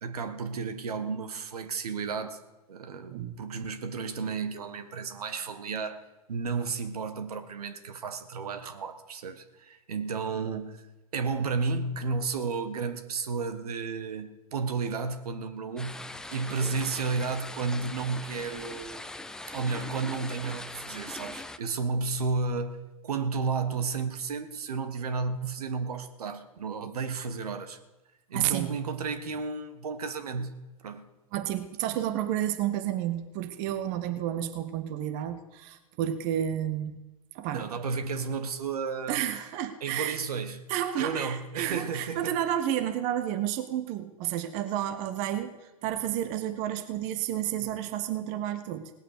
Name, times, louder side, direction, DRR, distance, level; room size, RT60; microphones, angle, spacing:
voice 1, 0.0-2.4 2.7-6.0 6.3-10.9 11.1-16.0 16.3-19.0 19.5-22.8 23.0-27.8 28.3-31.1 37.5-39.2 39.8-40.6 41.0-42.4, right 4 dB, 75° right, 10 dB, 1.5 m, -32 dB
sound 1, 15.8-21.6, left 2 dB, 5° left, 0.5 m, -41 dB
voice 2, 28.3-28.8 31.3-37.0 37.3-37.7 39.1-40.2 40.7-48.9, right 11 dB, 40° right, 10 dB, 1.1 m, -31 dB
18.0 x 8.7 x 6.7 m, 1.1 s
hypercardioid pair, 120°, 19 cm